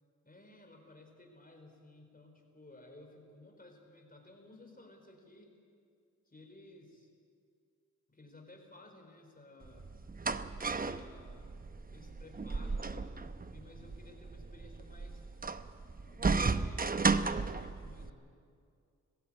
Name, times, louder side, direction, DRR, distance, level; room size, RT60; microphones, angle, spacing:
voice 1, 0.2-5.6 6.3-7.1 8.1-9.9 10.5-11.6 11.9-15.2 16.0-18.3, left 2 dB, 30° left, 3 dB, 4.7 m, -56 dB
sound 1, 9.6-18.1, right 4 dB, 30° right, 0.8 m, -34 dB
19.5 x 15.5 x 8.9 m, 2.3 s
cardioid pair, 60°, 31 cm